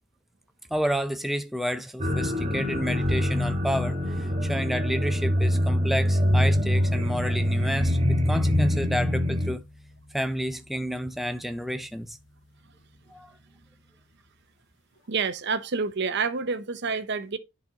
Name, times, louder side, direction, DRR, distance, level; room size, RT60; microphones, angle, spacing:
voice 1, 0.7-9.6 10.1-12.2 13.1-13.3, equal, ahead, 0.4 m, -30 dB
sound 1, 2.0-9.5, equal, 25° right, 1.4 m, -24 dB
sound 2, 6.3-14.4, equal, 55° left, 2.1 m, -46 dB
voice 2, 15.1-17.4, right 5 dB, 50° right, 0.6 m, -28 dB
10.5 x 4.1 x 2.8 m
head